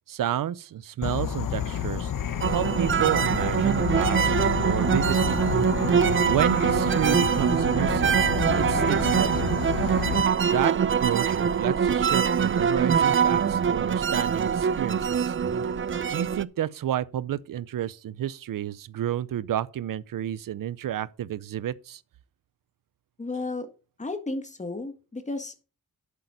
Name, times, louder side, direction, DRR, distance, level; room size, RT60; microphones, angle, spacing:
voice 1, 0.1-2.1 2.5-4.3 4.6-5.4 6.2-8.2 8.5-9.5 10.4-15.3 16.1-22.0 23.3-23.4, right 11 dB, 70° right, 0.7 m, -30 dB
Insect / Frog, 1.0-10.2, left 9 dB, 65° left, 1.2 m, -30 dB
sound 1, 2.4-16.4, right 7 dB, 35° right, 0.5 m, -23 dB
voice 2, 23.2-23.7 24.0-25.6, left 2 dB, 20° left, 1.9 m, -33 dB
11.0 x 8.5 x 4.1 m
wide cardioid pair, 125°, 34 cm